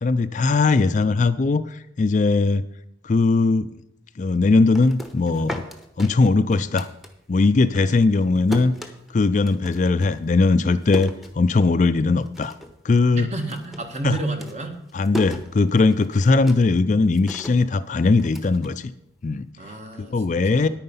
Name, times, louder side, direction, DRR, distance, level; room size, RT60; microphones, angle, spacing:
voice 1, 0.0-2.7 3.0-3.7 4.2-5.6 6.0-6.9 7.3-8.7 9.1-12.5 12.8-13.3 14.0-14.2 14.9-18.9 19.2-19.5 20.0-20.7, left 3 dB, 40° left, 12 dB, 0.4 m, -19 dB
sound 1, 4.5-7.5 7.7-11.9 12.2-12.8 13.1-19.3, right 1 dB, ahead, 0.9 m, -37 dB
voice 2, 13.1-14.8 19.6-20.7, right 2 dB, 35° right, 5 dB, 1.4 m, -31 dB
9.9 x 9.4 x 5.5 m, 0.80 s
head